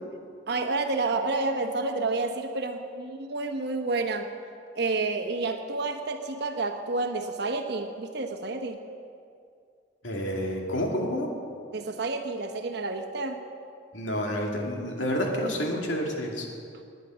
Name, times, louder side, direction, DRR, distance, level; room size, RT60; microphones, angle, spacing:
voice 1, 0.5-4.3 4.7-8.8 11.7-13.4, right 3 dB, 60° right, 5 dB, 1.0 m, -29 dB
voice 2, 10.0-11.3 13.9-16.5, equal, 80° left, 0 dB, 2.5 m, -29 dB
19.5 x 9.3 x 6.3 m, 2.4 s
head